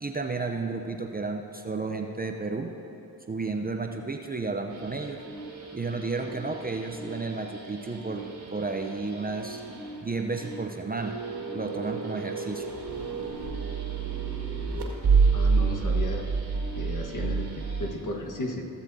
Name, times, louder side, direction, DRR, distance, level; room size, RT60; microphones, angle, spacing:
voice 1, 0.0-2.7 3.3-5.2 5.7-9.6 10.0-11.2 11.5-12.7, right 3 dB, 20° right, 3 dB, 0.7 m, -32 dB
sound 1, 4.7-17.9, right 5 dB, 65° right, 2.2 m, -30 dB
voice 2, 15.3-16.2 16.7-18.7, left 2 dB, 45° left, 0 dB, 1.5 m, -34 dB
17.5 x 7.2 x 2.8 m, 3.0 s
supercardioid pair, 45°, 42 cm